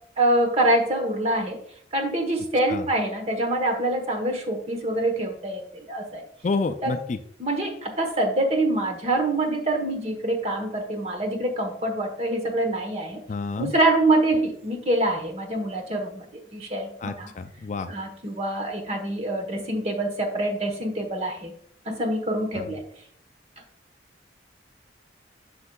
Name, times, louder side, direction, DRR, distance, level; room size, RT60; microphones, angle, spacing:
voice 1, 0.2-1.6 1.9-6.2 6.8-6.9 7.4-13.2 13.6-17.3 17.9-21.5 21.9-22.8, right 1 dB, 35° right, 4 dB, 1.1 m, -25 dB
voice 2, 6.4-7.2 13.3-13.7 17.0-17.9 22.5-22.7, left 4 dB, 40° left, 9 dB, 0.4 m, -29 dB
8.0 x 6.6 x 2.3 m, 0.64 s
head